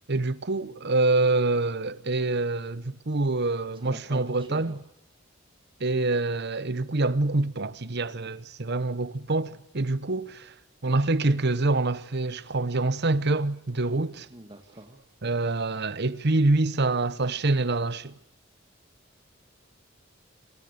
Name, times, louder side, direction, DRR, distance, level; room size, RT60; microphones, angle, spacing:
voice 1, 0.1-4.8 5.8-10.5 10.8-14.3 15.2-18.1, right 2 dB, 55° right, 1.1 m, -26 dB
voice 2, 3.7-4.8 14.3-15.0, right 1 dB, 25° right, 2.1 m, -44 dB
27.5 x 24.5 x 6.8 m
head